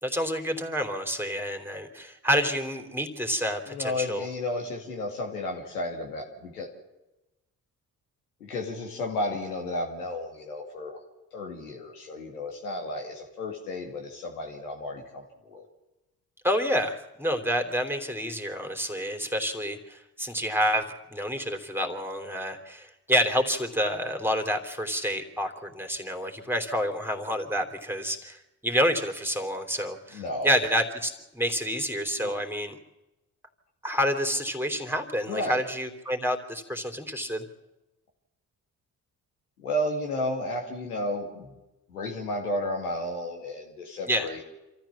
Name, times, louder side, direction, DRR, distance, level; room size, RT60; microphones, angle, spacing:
voice 1, 0.0-4.3 16.4-32.8 33.8-37.4 44.1-44.3, equal, 5° right, 5 dB, 3.4 m, -28 dB
voice 2, 3.7-6.7 8.4-11.0 11.3-15.7 30.1-30.5 32.2-32.3 35.2-35.6 39.6-41.6 41.9-44.4, left 1 dB, 85° left, 1 dB, 2.3 m, -33 dB
27.0 x 14.0 x 7.3 m, 1.0 s
hypercardioid pair, 45°, 44 cm